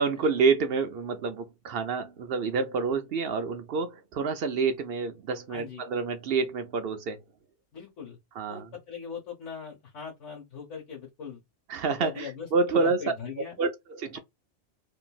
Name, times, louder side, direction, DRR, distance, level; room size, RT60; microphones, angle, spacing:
voice 1, 0.0-7.2 8.4-8.6 11.7-13.0 13.6-14.2, right 4 dB, 65° right, 0.7 m, -28 dB
voice 2, 5.5-5.8 7.7-8.2 8.5-11.4 12.0-12.5 12.7-13.6, left 6 dB, 80° left, 1.4 m, -40 dB
2.7 x 2.6 x 2.2 m
omnidirectional pair, 1.2 m